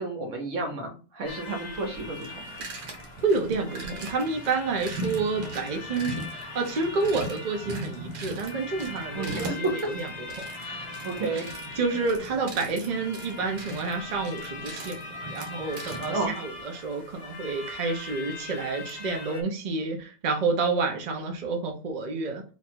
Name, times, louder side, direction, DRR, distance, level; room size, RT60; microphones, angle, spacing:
voice 1, 0.0-2.4 9.1-9.6 10.7-11.5 16.1-16.4, right 3 dB, 50° right, 1.3 m, -32 dB
sound 1, 1.2-19.4, left 3 dB, 50° left, 0.5 m, -41 dB
sound 2, 1.9-16.3, right 1 dB, 85° right, 1.5 m, -40 dB
voice 2, 3.2-11.0 11.3-11.4 11.8-22.4, right 4 dB, 70° right, 0.4 m, -29 dB
3.0 x 2.5 x 4.4 m
omnidirectional pair, 1.8 m